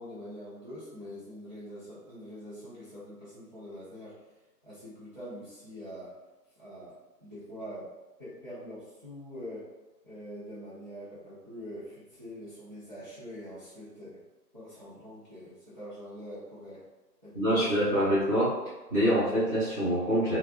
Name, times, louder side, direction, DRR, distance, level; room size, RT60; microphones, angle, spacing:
voice 1, 0.0-4.2 4.6-6.1 6.6-7.0 7.2-7.9 8.2-9.7 10.0-14.2 14.5-16.8 17.2-17.8, equal, 30° right, -13 dB, 0.7 m, -44 dB
voice 2, 17.3-18.5 18.9-20.4, equal, 10° left, -15 dB, 1.0 m, -25 dB
3.1 x 2.3 x 2.8 m, 1.1 s
figure-of-eight pair, 150°, 50 cm